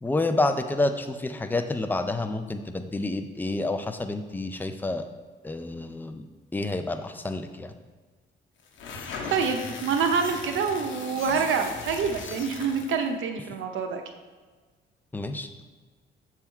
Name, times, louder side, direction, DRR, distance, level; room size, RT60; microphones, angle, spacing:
voice 1, 0.0-5.1 5.4-6.2 6.5-7.7 15.1-15.7, left 2 dB, 10° left, 7 dB, 0.5 m, -29 dB
sound 1, 8.7-13.1, left 4 dB, 70° left, 0.9 m, -38 dB
voice 2, 9.3-14.0, right 5 dB, 80° right, 5 dB, 0.8 m, -26 dB
7.0 x 3.6 x 4.4 m, 1.4 s
cardioid pair, 90°, 20 cm